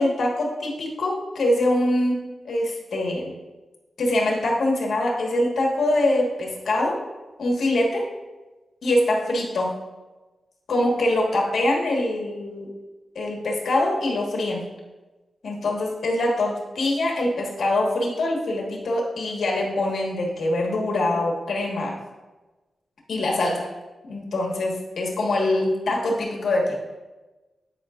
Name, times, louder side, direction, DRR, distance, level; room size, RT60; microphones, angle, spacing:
voice 1, 0.0-3.3 4.0-7.0 7.4-8.1 8.8-9.7 10.7-12.7 13.1-14.7 15.4-22.0 23.1-23.7 24.1-26.8, left 1 dB, 75° left, -1 dB, 1.4 m, -24 dB
10.5 x 5.0 x 2.5 m, 1.2 s
wide cardioid pair, 115°, 0 cm